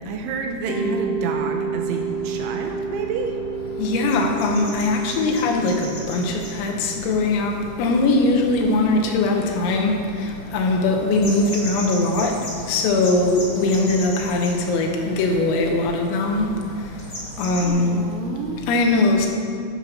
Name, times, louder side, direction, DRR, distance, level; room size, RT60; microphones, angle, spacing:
voice 1, 0.1-3.3 17.6-18.6, right 4 dB, 85° right, 3 dB, 3.0 m, -29 dB
Mallet percussion, 0.7-9.4, right 5 dB, 55° left, 1.8 m, -31 dB
sound 1, 1.9-17.7, equal, 30° left, 1.2 m, -38 dB
voice 2, 3.8-17.1 17.4-18.1 18.7-19.3, left 2 dB, 85° left, 2 dB, 3.7 m, -21 dB
11.0 x 6.9 x 5.8 m, 2.2 s
omnidirectional pair, 5.9 m